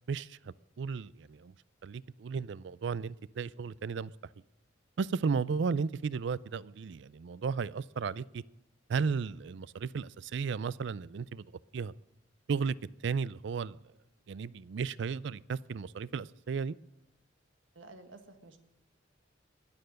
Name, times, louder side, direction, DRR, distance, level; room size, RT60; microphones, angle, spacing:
voice 1, 0.1-1.5 1.8-4.1 5.0-8.4 8.9-11.4 11.7-11.9 12.5-12.7 13.0-13.8 14.3-16.8, right 5 dB, 65° right, 21 dB, 0.4 m, -34 dB
voice 2, 17.7-18.6, right 2 dB, 85° right, 7 dB, 1.6 m, -52 dB
20.5 x 6.8 x 6.4 m, 0.97 s
head